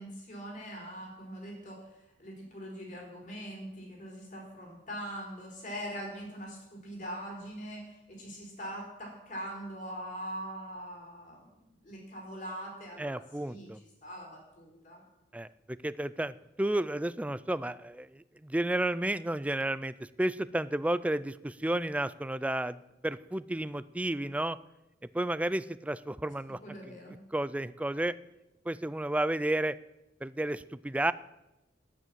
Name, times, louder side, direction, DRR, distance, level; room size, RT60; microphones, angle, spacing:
voice 1, 0.0-15.0 26.6-27.2, equal, 45° left, -1 dB, 4.3 m, -42 dB
voice 2, 13.0-13.8 15.3-22.8 23.0-24.6 25.1-26.6 27.3-28.2 28.7-29.8 30.2-31.1, right 1 dB, 5° right, 16 dB, 0.3 m, -32 dB
11.0 x 9.6 x 7.5 m, 0.94 s
head